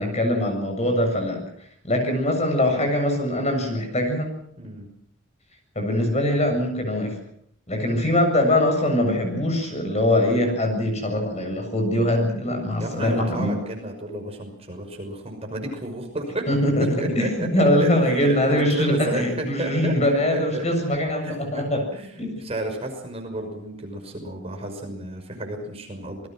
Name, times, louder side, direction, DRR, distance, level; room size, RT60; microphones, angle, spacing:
voice 1, 0.0-1.4 1.8-4.3 5.8-7.1 7.7-13.5 16.5-16.9 17.2-21.8 22.2-22.3, left 1 dB, 35° left, 4 dB, 7.5 m, -22 dB
voice 2, 12.8-16.5 16.8-20.8 21.2-21.6 21.9-26.3, right 1 dB, 30° right, 3 dB, 5.9 m, -32 dB
27.5 x 21.0 x 6.2 m, 0.64 s
head